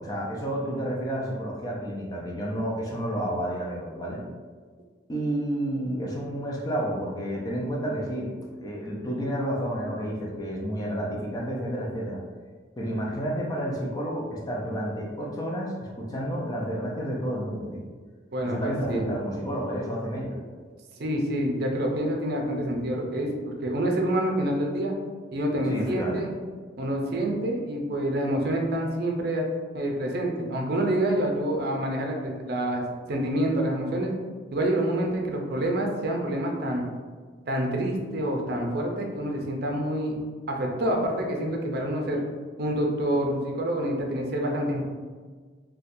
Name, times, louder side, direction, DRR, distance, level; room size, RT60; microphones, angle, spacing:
voice 1, 0.0-4.2 5.1-8.3 8.6-12.2 12.8-17.8 18.4-20.4 25.6-26.2, equal, 20° left, -3 dB, 0.5 m, -30 dB
voice 2, 18.3-19.1 21.0-23.3 23.6-24.9 25.3-26.3 26.8-29.4 29.7-32.8 33.1-34.1 34.5-36.8 37.5-40.2 40.5-42.2 42.6-44.9, right 1 dB, 60° right, 1 dB, 0.5 m, -27 dB
4.1 x 2.2 x 2.6 m, 1.5 s
head